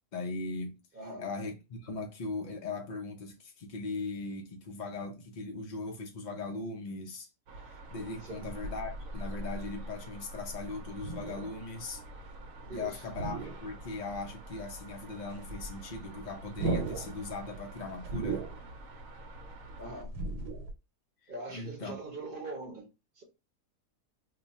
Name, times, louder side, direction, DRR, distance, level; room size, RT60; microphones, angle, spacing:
voice 1, 0.1-0.8 1.2-7.3 7.7-12.0 12.7-18.4 21.2-22.0, left 3 dB, 70° left, 0.4 m, -39 dB
voice 2, 0.9-1.3 8.2-8.5 12.6-13.0 19.8-20.1 21.3-22.9 23.2-23.3, right 2 dB, 40° right, 0.9 m, -42 dB
sound 1, 7.5-20.0, right 2 dB, 65° right, 1.0 m, -49 dB
sound 2, 7.9-12.8 13.0-14.3 14.6-14.7 15.0-20.7, right 3 dB, 85° right, 1.3 m, -38 dB
2.9 x 2.2 x 4.0 m
omnidirectional pair, 1.6 m